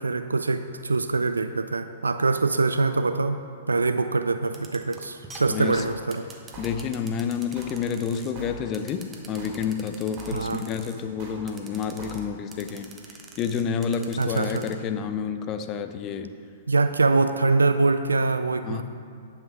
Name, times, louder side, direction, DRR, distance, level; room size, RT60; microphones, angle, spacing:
voice 1, 0.0-3.4 3.7-6.3 10.3-10.6 14.2-14.7 16.7-18.8, right 3 dB, 80° right, 9 dB, 0.3 m, -24 dB
sound 1, 4.4-8.3 8.7-11.0 11.5-12.2 12.5-14.7, right 4 dB, 20° right, 1.1 m, -45 dB
voice 2, 5.5-5.8 6.6-12.9 13.4-16.3 18.6-18.8, left 7 dB, 30° left, 9 dB, 0.6 m, -29 dB
sound 2, 5.5-6.0 6.3-7.0 7.3-7.8 8.1-8.8 9.1-10.7 10.9-12.5, right 2 dB, 35° right, 2.7 m, -44 dB
10.5 x 5.9 x 5.8 m, 2.3 s
figure-of-eight pair, 110°, 0 cm